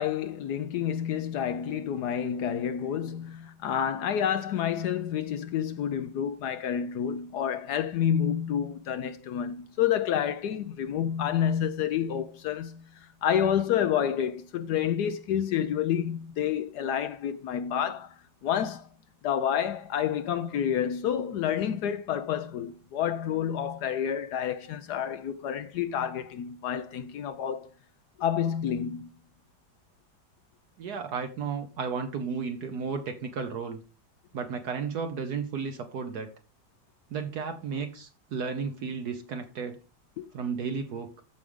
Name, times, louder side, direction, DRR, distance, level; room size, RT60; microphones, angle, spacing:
voice 1, 0.0-18.1 18.4-18.9 19.2-27.7 28.2-29.1 40.2-40.3, left 9 dB, 70° left, 1.1 m, -29 dB
voice 2, 30.8-33.8 34.3-36.3 37.1-39.8 40.3-41.2, right 5 dB, 65° right, 1.4 m, -33 dB
14.0 x 4.9 x 3.6 m
omnidirectional pair, 1.9 m